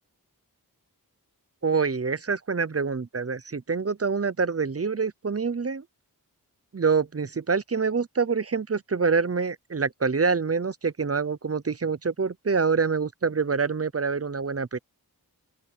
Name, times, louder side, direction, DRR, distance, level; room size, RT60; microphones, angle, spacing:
voice 1, 1.6-5.8 6.7-14.8, right 5 dB, 40° right, 0.7 m, -26 dB
open air
wide cardioid pair, 65°, 38 cm